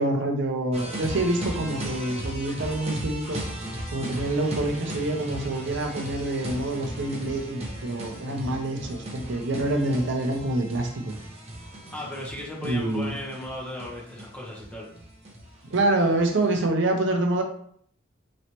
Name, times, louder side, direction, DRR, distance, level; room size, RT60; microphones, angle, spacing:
voice 1, 0.0-3.4 3.9-11.1 12.6-13.1 15.7-17.4, right 2 dB, 65° right, 3 dB, 0.5 m, -26 dB
sound 1, 0.7-16.6, right 1 dB, 30° right, 0.8 m, -37 dB
voice 2, 11.9-14.9, left 1 dB, 5° left, -5 dB, 1.1 m, -36 dB
4.1 x 3.1 x 2.9 m, 0.62 s
head